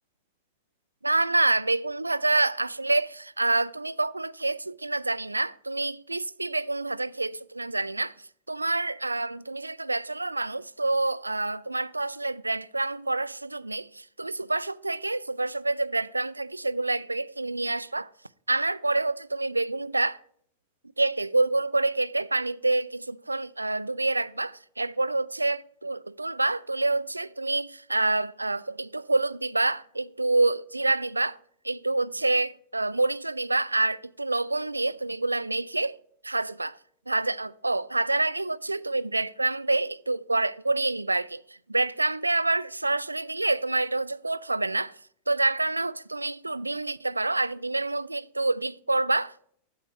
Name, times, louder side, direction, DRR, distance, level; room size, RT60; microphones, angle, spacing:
voice 1, 1.0-8.1 8.5-18.1 18.5-20.2 21.0-31.4 31.6-36.0 36.2-36.8 37.1-41.4 41.7-44.9 45.3-49.5, right 2 dB, 85° right, 0.3 m, -27 dB
11.5 x 8.3 x 5.1 m
figure-of-eight pair, 90°, 0 cm